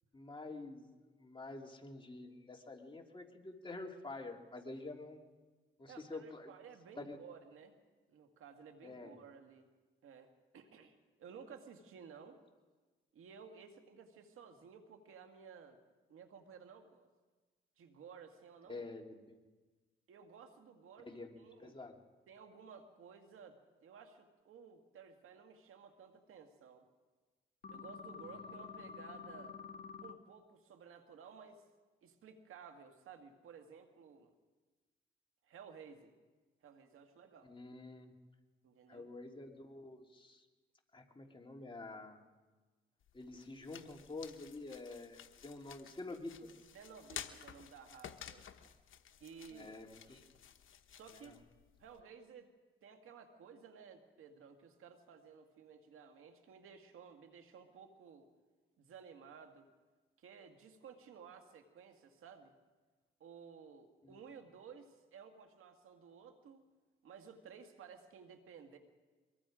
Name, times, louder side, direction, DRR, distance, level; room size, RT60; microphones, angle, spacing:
voice 1, 0.1-5.3 5.8-6.5 7.0-7.2 8.8-9.1 18.7-19.4 21.0-21.9 37.4-38.1 38.9-40.4 40.9-42.2 43.1-46.5 49.5-50.2 51.2-51.3 64.0-64.1, left 2 dB, 25° left, 2 dB, 2.8 m, -48 dB
voice 2, 5.9-7.8 8.1-9.7 10.0-10.3 10.5-10.9 11.2-12.4 13.1-15.8 16.1-17.1 17.8-18.9 20.1-21.8 22.3-26.9 27.7-29.6 30.0-31.6 32.0-34.3 35.4-36.1 36.6-37.5 38.6-39.1 46.7-48.7 49.2-49.8 50.9-51.4 51.8-52.5 52.8-58.3 58.8-59.7 60.2-62.5 63.2-66.6 67.0-68.8, right 6 dB, 85° right, 6 dB, 1.9 m, -55 dB
sound 1, 27.6-30.1, left 6 dB, 45° left, 1.5 m, -49 dB
sound 2, 43.0-52.0, left 8 dB, 75° left, 1.2 m, -53 dB
23.5 x 22.0 x 5.0 m, 1.3 s
cardioid pair, 80°, 21 cm